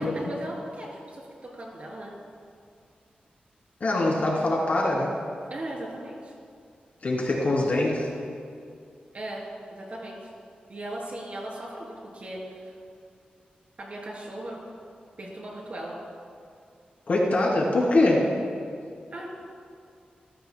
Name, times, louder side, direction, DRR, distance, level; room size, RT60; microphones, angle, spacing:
voice 1, 0.0-2.1 5.5-6.3 9.1-9.4 9.7-10.3 10.7-12.7 13.8-14.6 15.2-15.9 19.1-19.3, right 1 dB, 45° right, -2 dB, 3.2 m, -37 dB
voice 2, 3.8-5.1 7.0-8.1 17.1-18.2, left 2 dB, 60° left, -3 dB, 2.8 m, -23 dB
21.0 x 14.0 x 2.2 m, 2.3 s
wide cardioid pair, 120°, 3 cm